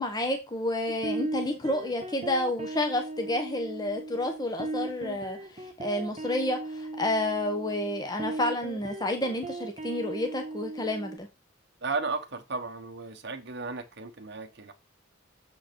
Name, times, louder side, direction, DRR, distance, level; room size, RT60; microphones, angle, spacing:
voice 1, 0.0-11.3, left 1 dB, 20° left, 1.1 m, -30 dB
sound 1, 0.9-11.2, right 2 dB, 30° right, 1.2 m, -37 dB
voice 2, 11.8-14.7, right 4 dB, 50° right, 1.1 m, -34 dB
7.3 x 5.1 x 4.5 m
head